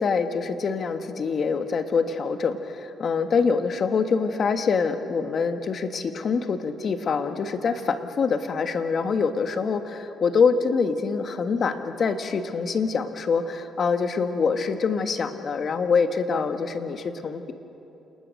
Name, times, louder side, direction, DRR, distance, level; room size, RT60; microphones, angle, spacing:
voice 1, 0.0-17.5, left 5 dB, 50° left, 7 dB, 1.5 m, -25 dB
28.5 x 20.0 x 6.5 m, 3.0 s
cardioid pair, 90°, 0 cm